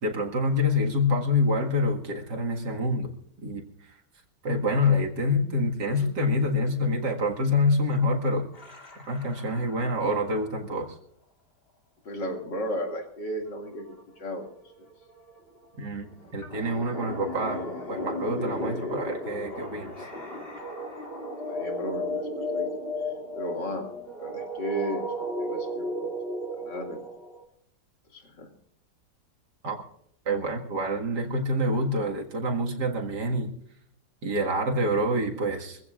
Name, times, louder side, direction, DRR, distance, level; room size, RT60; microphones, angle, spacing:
voice 1, 0.0-3.1 3.4-3.7 4.4-8.5 9.1-11.0 15.8-16.1 16.3-17.6 17.9-19.9 29.6-29.8 30.3-33.5 34.2-35.8, left 1 dB, 75° right, 2 dB, 2.4 m, -26 dB
sound 1, 8.5-10.5 13.5-13.6 13.8-27.4, left 1 dB, 35° left, 2.8 m, -35 dB
voice 2, 12.0-13.9 14.2-14.5 16.2-16.3 21.5-22.7 23.3-23.9 24.2-25.1 25.4-26.1 26.6-27.0 28.1-28.5, equal, 85° left, 3 dB, 3.0 m, -34 dB
24.0 x 15.5 x 2.5 m, 0.67 s
omnidirectional pair, 1.8 m